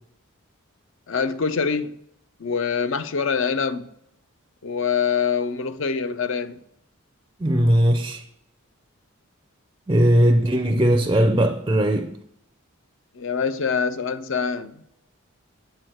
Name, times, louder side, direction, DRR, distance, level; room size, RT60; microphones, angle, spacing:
voice 1, 1.1-2.0 2.4-3.9 4.6-6.6 13.1-14.8, left 6 dB, 60° left, 0.5 m, -25 dB
voice 2, 7.4-8.2 9.9-12.1, right 1 dB, 15° right, 0.4 m, -19 dB
7.8 x 4.7 x 6.2 m
head